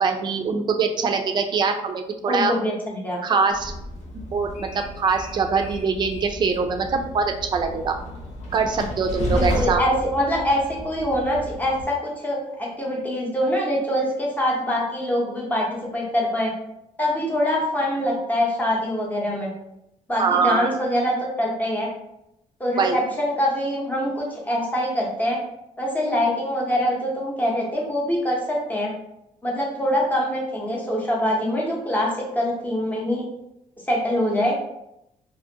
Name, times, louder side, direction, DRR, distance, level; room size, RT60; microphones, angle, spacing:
voice 1, 0.0-2.5 3.2-3.7 4.3-4.7 5.0-7.9 8.5-9.8 20.2-20.7 22.8-23.0, right 5 dB, 35° right, 5 dB, 0.3 m, -23 dB
voice 2, 2.3-3.2 9.2-15.7 15.9-16.5 17.0-19.5 20.1-21.9 22.6-25.4 25.8-28.9 29.4-33.3 33.9-34.6, equal, 10° left, -3 dB, 0.7 m, -24 dB
Train, 3.5-11.8, left 1 dB, 60° left, 0.5 m, -32 dB
2.5 x 2.4 x 2.7 m, 0.83 s
cardioid pair, 120°, 13 cm